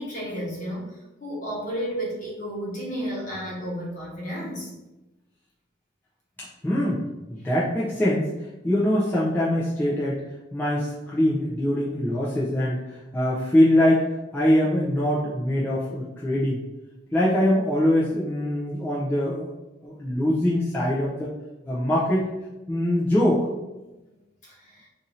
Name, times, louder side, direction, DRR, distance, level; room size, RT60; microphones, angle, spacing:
voice 1, 0.0-4.7 24.4-24.9, equal, 40° left, -4 dB, 1.0 m, -32 dB
voice 2, 6.4-7.0 7.3-8.3 8.6-10.2 10.5-14.1 14.3-16.6 17.1-19.5 19.8-21.3 21.7-22.3 22.7-23.5, left 1 dB, 10° left, -8 dB, 0.4 m, -23 dB
2.6 x 2.6 x 4.1 m, 1.0 s
head